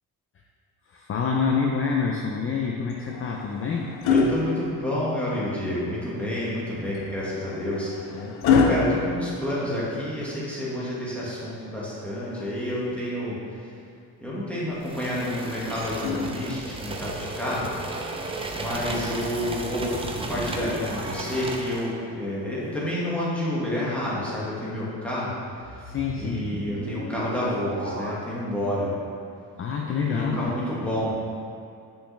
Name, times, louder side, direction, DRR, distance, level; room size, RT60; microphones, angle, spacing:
voice 1, 0.9-3.9 8.1-8.7 25.8-26.5 29.6-30.5, left 5 dB, 35° left, 0 dB, 0.5 m, -27 dB
sound 1, 2.9-5.4 7.0-10.1 11.9-13.1 15.1-16.9 18.1-18.3, left 5 dB, 75° left, 0.7 m, -28 dB
voice 2, 4.1-13.4 14.2-17.7 18.5-25.3 26.2-28.9 30.1-31.2, left 1 dB, 5° left, -8 dB, 1.8 m, -29 dB
sound 2, 14.8-21.9, right 2 dB, 15° right, 0.5 m, -35 dB
sound 3, 15.7-17.0 19.7-22.4 25.6-28.1, right 1 dB, 30° right, 1.4 m, -38 dB
8.6 x 5.7 x 3.4 m, 2.4 s
cardioid pair, 145°, 38 cm